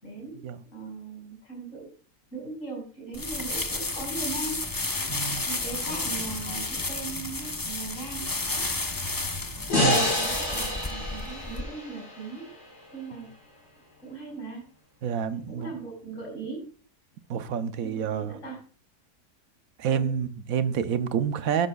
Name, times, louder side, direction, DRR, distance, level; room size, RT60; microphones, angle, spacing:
voice 1, 0.0-0.4 0.7-1.9 2.3-4.6 5.5-8.3 9.8-12.6 12.9-13.3 14.0-14.6 15.3-16.7 17.8-18.6 19.8-20.2, right 3 dB, 50° left, 5.1 m, -39 dB
sound 1, 3.1-11.6, left 2 dB, 25° left, 0.5 m, -32 dB
voice 2, 5.1-5.5 9.8-10.1 15.0-15.7 17.3-18.4 19.8-21.7, right 7 dB, 65° right, 1.1 m, -28 dB
sound 2, 9.7-12.9, left 2 dB, 85° left, 5.4 m, -28 dB
13.0 x 11.0 x 2.3 m
omnidirectional pair, 1.7 m